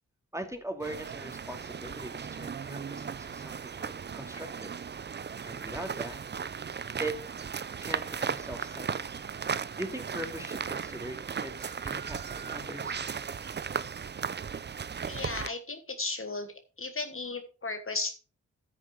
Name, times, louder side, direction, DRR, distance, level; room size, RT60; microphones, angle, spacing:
voice 1, 0.3-4.7 5.4-6.2 7.0-7.2 7.8-9.1 9.8-13.0, right 1 dB, 10° right, 5 dB, 2.6 m, -40 dB
sound 1, 0.8-15.5, right 6 dB, 35° right, 0.5 m, -36 dB
voice 2, 15.1-16.5 16.8-18.2, left 3 dB, 45° left, 7 dB, 1.4 m, -35 dB
9.3 x 6.5 x 4.9 m, 0.35 s
cardioid pair, 45°, 31 cm